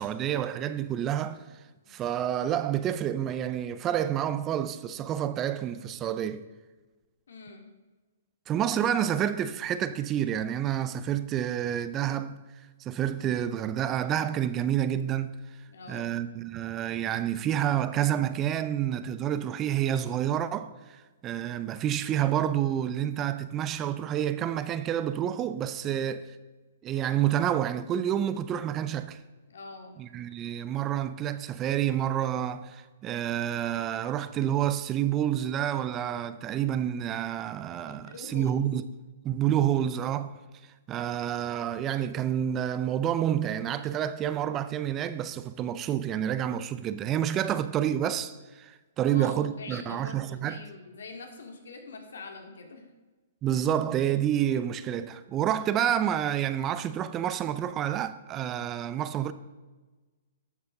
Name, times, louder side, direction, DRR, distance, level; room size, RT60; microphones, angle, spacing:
voice 1, 0.0-1.4 1.9-6.4 8.5-12.4 12.8-15.3 15.9-26.3 26.8-29.2 30.0-38.8 39.2-40.3 40.9-50.6 53.4-59.3, right 10 dB, 20° right, 0.5 m, -29 dB
voice 2, 7.3-7.7 15.7-16.2 25.8-26.0 29.5-29.9 37.9-38.6 49.0-52.8, left 3 dB, 85° left, 2.3 m, -44 dB
13.0 x 7.2 x 5.4 m
hypercardioid pair, 150°, 0 cm